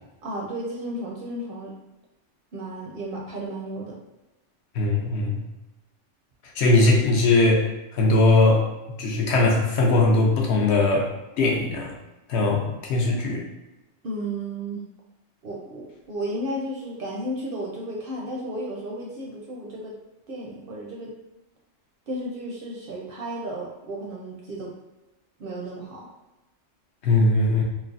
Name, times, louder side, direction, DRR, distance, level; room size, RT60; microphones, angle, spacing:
voice 1, 0.2-1.7 2.5-4.0 14.0-14.8 15.4-19.9 20.3-21.1 22.1-24.7 25.4-26.1, right 1 dB, 60° right, -2 dB, 0.6 m, -33 dB
voice 2, 4.7-5.4 6.6-7.6 7.9-8.6 9.0-11.1 11.4-11.9 12.3-13.4 27.0-27.6, left 2 dB, 70° left, -1 dB, 0.8 m, -20 dB
3.2 x 2.0 x 2.4 m, 1.0 s
omnidirectional pair, 1.2 m